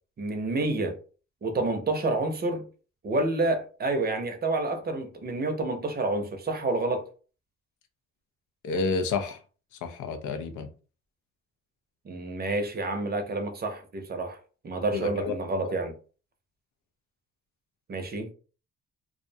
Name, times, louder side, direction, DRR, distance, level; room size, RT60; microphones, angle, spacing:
voice 1, 0.2-1.0 1.4-2.6 3.0-7.0 12.0-14.4 14.6-15.9 17.9-18.3, right 2 dB, 30° right, 0.6 m, -29 dB
voice 2, 8.6-9.4 9.8-10.7 14.9-15.3 15.6-15.7, left 4 dB, 80° left, 0.6 m, -30 dB
2.5 x 2.1 x 2.6 m
cardioid pair, 90°, 30 cm